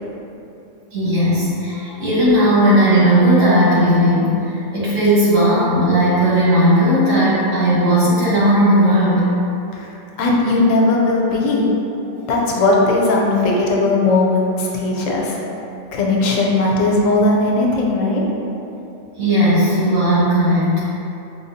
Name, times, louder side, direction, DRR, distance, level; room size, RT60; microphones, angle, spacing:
voice 1, 0.9-9.2 19.2-20.7, equal, 80° right, -9 dB, 1.5 m, -15 dB
voice 2, 9.7-11.7 12.3-15.4 15.9-18.2, left 2 dB, 80° left, -2 dB, 1.0 m, -17 dB
5.1 x 2.2 x 2.6 m, 2.8 s
omnidirectional pair, 1.3 m